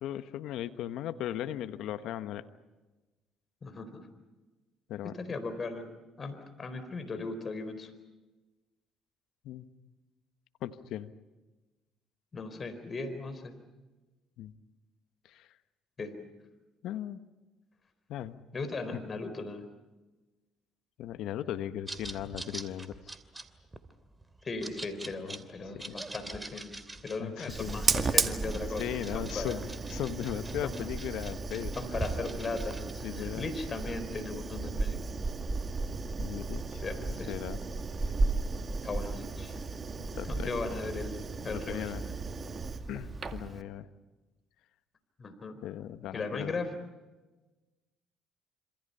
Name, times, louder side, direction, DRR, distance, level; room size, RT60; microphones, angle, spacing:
voice 1, 0.0-2.5 4.9-5.2 9.4-9.7 10.6-11.1 14.4-14.5 15.2-15.5 16.8-17.2 18.1-18.4 21.0-23.0 25.2-25.5 25.7-26.0 27.2-27.8 28.8-31.8 33.0-33.5 36.2-37.6 40.0-40.5 41.4-42.0 42.9-43.9 45.6-46.7, left 11 dB, 70° left, 11 dB, 1.3 m, -38 dB
voice 2, 3.6-4.1 5.1-5.9 6.2-7.9 12.3-13.5 16.0-16.1 18.5-19.7 22.2-22.3 24.4-26.7 27.0-28.8 29.1-29.6 30.6-30.8 31.8-35.0 36.8-37.3 38.8-39.6 40.3-41.2 41.4-41.9 45.2-45.6 46.1-46.7, left 3 dB, 40° left, 9 dB, 4.3 m, -37 dB
sound 1, 21.9-32.9, right 2 dB, 15° right, 2.7 m, -44 dB
Fire, 27.5-43.6, right 3 dB, 35° right, 2.0 m, -34 dB
27.5 x 27.0 x 5.7 m, 1.2 s
hypercardioid pair, 55°, 0 cm